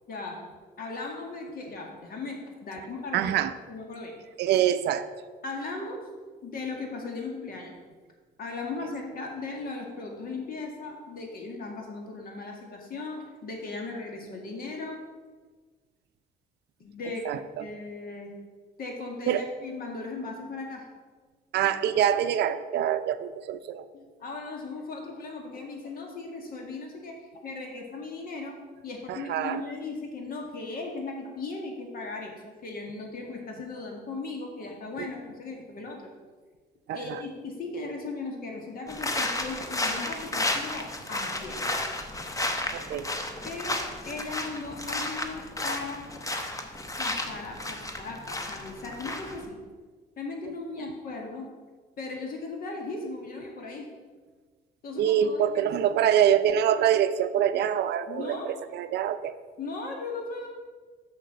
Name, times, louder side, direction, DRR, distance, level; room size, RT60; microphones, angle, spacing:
voice 1, 0.1-0.4 0.8-3.2 3.7-4.1 5.4-6.1 6.4-7.8 8.4-15.0 16.8-17.3 17.6-18.3 18.8-20.9 23.9-28.6 28.8-36.1 36.9-41.7 43.4-46.1 47.0-49.6 50.2-51.5 52.0-53.9 54.8-55.7 58.1-58.5 59.6-60.5, left 3 dB, 55° left, 1 dB, 1.9 m, -37 dB
voice 2, 3.1-3.5 4.4-5.1 17.2-17.6 19.3-19.5 21.5-23.9 29.1-29.6 35.0-35.1 36.9-37.2 42.7-43.1 50.8-50.9 55.0-59.3, right 10 dB, 65° right, 12 dB, 0.5 m, -25 dB
sound 1, 38.9-49.5, left 2 dB, 20° left, 0.9 m, -33 dB
6.6 x 6.4 x 5.4 m, 1.4 s
cardioid pair, 95°, 18 cm